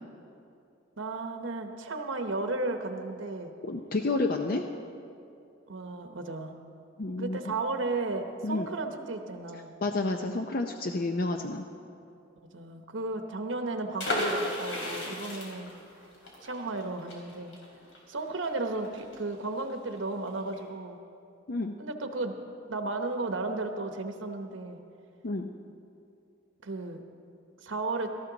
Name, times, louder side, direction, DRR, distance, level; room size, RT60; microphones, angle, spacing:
voice 1, 1.0-3.5 5.7-6.5 7.2-9.8 12.5-15.7 16.4-17.6 18.1-21.0 21.8-22.3 22.7-24.8 26.6-27.0 27.6-28.1, right 3 dB, 80° right, 5 dB, 1.0 m, -34 dB
voice 2, 3.6-4.6 7.0-7.4 8.4-8.7 9.8-11.6 21.5-21.8 25.2-25.5, left 2 dB, 50° left, 4 dB, 0.5 m, -30 dB
sound 1, 14.0-19.6 19.9-20.0 20.3-20.6, left 1 dB, 80° left, 3.7 m, -34 dB
18.0 x 13.5 x 3.9 m, 2.6 s
head